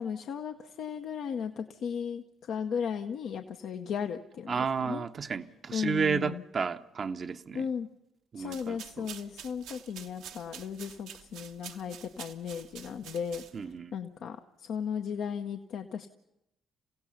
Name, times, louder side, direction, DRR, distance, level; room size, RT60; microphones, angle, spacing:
voice 1, 0.0-4.5 4.8-5.0 5.7-6.4 7.5-7.9 8.3-13.4 13.9-16.1, left 7 dB, 70° left, 0.8 m, -35 dB
voice 2, 4.5-7.7 8.3-9.1 13.5-14.0, right 5 dB, 50° right, 0.8 m, -32 dB
sound 1, 8.4-13.8, right 9 dB, 80° right, 1.0 m, -48 dB
28.5 x 16.0 x 5.7 m
hypercardioid pair, 50°, 0 cm